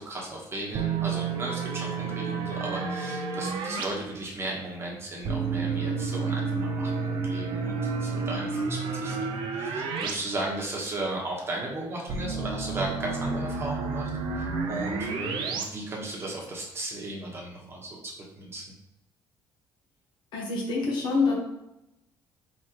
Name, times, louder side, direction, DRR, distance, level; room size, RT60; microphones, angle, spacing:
voice 1, 0.0-18.6, right 2 dB, 30° right, -3 dB, 1.2 m, -36 dB
sound 1, 0.7-3.8 5.2-10.1 10.4-10.5 12.1-15.6, right 4 dB, 65° right, 0.7 m, -30 dB
voice 2, 20.3-21.3, left 4 dB, 65° left, -2 dB, 1.3 m, -26 dB
4.0 x 3.7 x 3.0 m, 0.88 s
cardioid pair, 105°, 9 cm